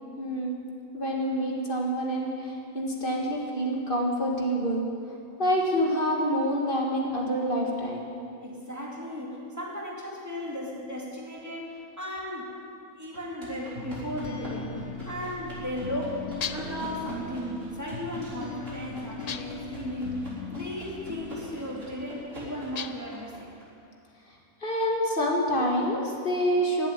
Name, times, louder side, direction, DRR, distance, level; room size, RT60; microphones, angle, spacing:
voice 1, 0.2-0.6 0.9-4.9 5.4-8.2 24.6-26.9, equal, 40° left, -2 dB, 1.9 m, -27 dB
voice 2, 8.4-12.6 13.0-14.8 15.1-23.5, equal, 10° right, -4 dB, 2.6 m, -36 dB
sound 1, 13.1-23.6, equal, 65° right, 4.2 m, -46 dB
sound 2, 13.8-22.5, left 4 dB, 55° left, 1.1 m, -40 dB
sound 3, 16.4-16.9 19.3-19.7 22.7-23.2, left 7 dB, 75° left, 0.3 m, -36 dB
15.5 x 7.6 x 10.0 m, 2.5 s
omnidirectional pair, 1.4 m